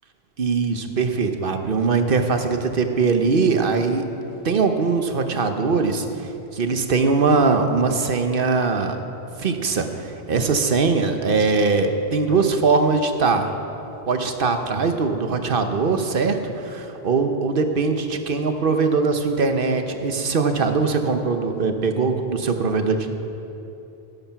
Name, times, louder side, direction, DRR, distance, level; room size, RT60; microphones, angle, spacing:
voice 1, 0.4-4.0 4.4-9.0 9.4-13.5 14.1-23.1, right 4 dB, 60° right, 6 dB, 1.0 m, -21 dB
11.5 x 11.0 x 5.7 m, 2.9 s
omnidirectional pair, 1.1 m